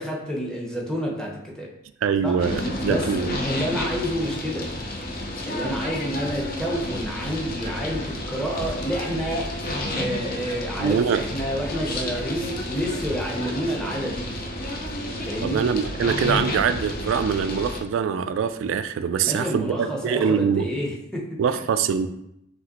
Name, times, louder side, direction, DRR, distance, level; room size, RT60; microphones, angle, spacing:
voice 1, 0.0-1.7 2.2-2.4 2.9-3.0 3.4-4.7 5.4-9.5 9.9-14.3 15.3-15.6 19.2-21.6, equal, 5° left, -2 dB, 0.8 m, -29 dB
voice 2, 2.0-3.4 10.8-11.2 15.4-20.7 21.4-22.1, right 6 dB, 80° right, 11 dB, 0.3 m, -23 dB
sound 1, 2.4-17.8, left 1 dB, 50° left, 0.6 m, -31 dB
4.8 x 3.3 x 2.9 m, 0.81 s
head